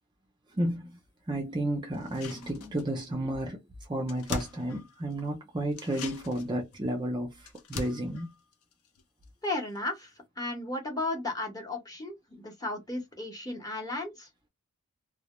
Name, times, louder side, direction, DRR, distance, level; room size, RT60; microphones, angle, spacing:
voice 1, 0.5-1.0 1.3-8.3, right 1 dB, 20° right, 0.4 m, -32 dB
sound 1, 1.9-3.1 3.4-3.5 3.8-5.3 5.7-9.5 9.8-9.9, left 4 dB, 70° left, 0.5 m, -42 dB
voice 2, 9.4-14.3, left 2 dB, 15° left, 0.8 m, -35 dB
2.1 x 2.0 x 2.9 m
head